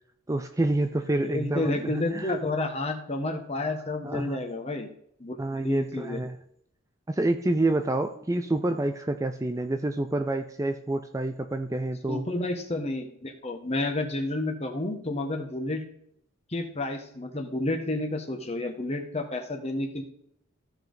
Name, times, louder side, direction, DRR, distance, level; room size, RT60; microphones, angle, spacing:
voice 1, 0.3-2.3 4.0-4.4 5.4-6.4 7.1-12.2, right 2 dB, 15° right, 7 dB, 0.4 m, -28 dB
voice 2, 1.2-4.9 5.2-5.4 5.6-6.2 12.1-15.8 16.5-20.0, left 2 dB, 30° left, 4 dB, 1.4 m, -30 dB
14.5 x 5.3 x 4.0 m, 0.70 s
head